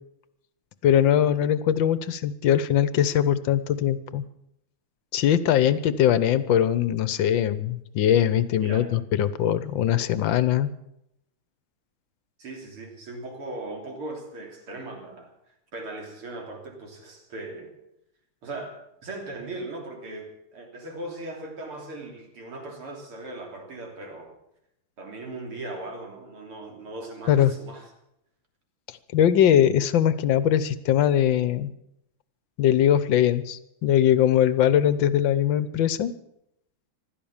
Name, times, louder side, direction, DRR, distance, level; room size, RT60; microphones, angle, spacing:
voice 1, 0.8-4.2 5.1-10.7 27.3-27.5 29.1-31.7 32.6-36.1, left 10 dB, 65° left, 15 dB, 1.5 m, -21 dB
voice 2, 12.4-15.3 15.7-17.7 18.4-24.3 25.0-27.9, right 2 dB, 80° right, 2 dB, 4.1 m, -38 dB
15.5 x 12.5 x 7.2 m, 0.79 s
omnidirectional pair, 2.4 m